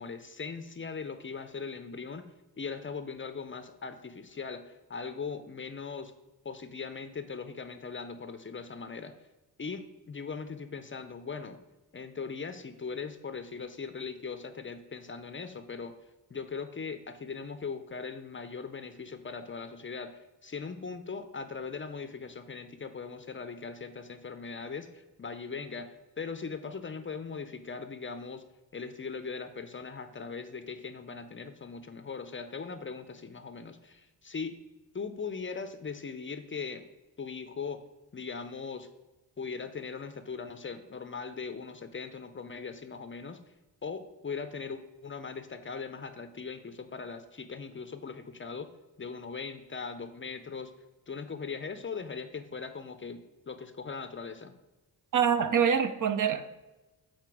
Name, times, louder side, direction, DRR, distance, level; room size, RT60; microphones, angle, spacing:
voice 1, 0.0-2.3 2.6-6.1 6.4-9.1 9.6-11.6 11.9-15.9 16.3-20.1 20.4-28.4 28.7-34.6 34.9-36.9 37.2-37.8 38.1-38.9 39.4-43.4 43.8-48.7 49.0-50.7 51.1-54.6, left 5 dB, 30° left, 9 dB, 0.5 m, -39 dB
voice 2, 55.1-56.5, right 7 dB, 50° right, 10 dB, 0.6 m, -25 dB
7.7 x 4.4 x 4.7 m, 1.1 s
wide cardioid pair, 120°, 40 cm